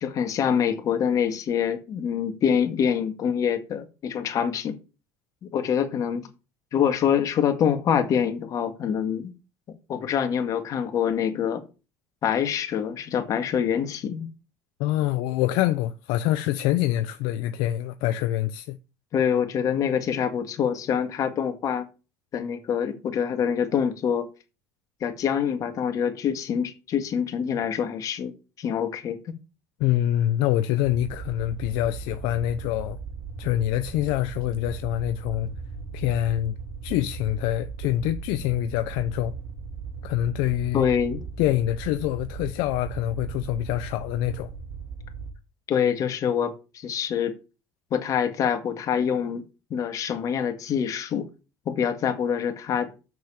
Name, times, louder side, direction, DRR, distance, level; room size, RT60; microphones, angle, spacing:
voice 1, 0.0-4.8 5.5-6.3 6.7-9.3 9.9-11.6 12.2-14.3 19.1-21.9 22.3-24.3 25.0-28.3 28.6-29.2 40.7-41.2 45.7-47.3 47.9-49.4 49.7-51.3 51.7-52.9, left 8 dB, 45° left, 2.0 m, -25 dB
voice 2, 14.8-18.8 29.8-33.0 33.4-35.5 35.9-36.6 36.8-39.3 40.0-40.9 41.4-44.5, left 13 dB, 70° left, 0.7 m, -25 dB
sound 1, 30.8-45.3, right 5 dB, 70° right, 2.2 m, -38 dB
6.8 x 6.3 x 7.2 m
supercardioid pair, 90°, 8 cm